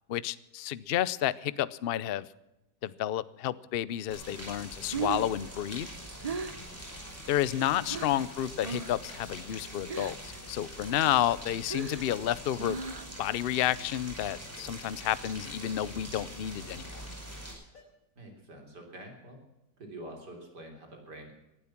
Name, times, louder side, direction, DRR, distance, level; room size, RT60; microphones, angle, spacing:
voice 1, 0.1-2.2 2.8-5.9 7.3-12.8 13.2-17.0, left 12 dB, 75° left, 18 dB, 0.5 m, -31 dB
Rain, 4.1-17.5, equal, 10° right, 5.1 m, -44 dB
Breathing, 4.9-8.2 8.6-9.1 9.3-10.4 10.7-13.3, right 5 dB, 35° right, 0.6 m, -38 dB
sound 1, 7.1-7.2 7.6-8.3 8.7-8.8 9.8-11.2 11.5-11.6 11.9-12.0 12.2-12.3 12.5-12.6 14.2-14.5 15.1-15.2 15.6-15.9 16.2-16.4 17.0-17.1 17.7-17.8, left 3 dB, 50° left, 4.1 m, -58 dB
voice 2, 7.6-8.1 18.2-19.4 19.8-21.4, right 1 dB, 70° right, 3 dB, 4.1 m, -47 dB
20.0 x 12.0 x 5.9 m, 0.94 s
omnidirectional pair, 1.8 m